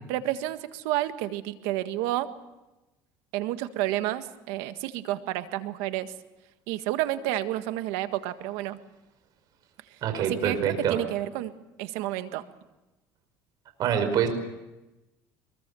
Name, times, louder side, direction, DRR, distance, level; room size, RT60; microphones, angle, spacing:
voice 1, 0.1-2.3 3.3-6.1 6.7-8.8 10.2-11.5 11.8-12.4, right 14 dB, 85° right, 9 dB, 1.7 m, -30 dB
voice 2, 10.0-11.0 13.8-14.3, right 8 dB, 55° right, 7 dB, 5.3 m, -25 dB
24.0 x 22.5 x 7.1 m, 1.0 s
cardioid pair, 120°, 8 cm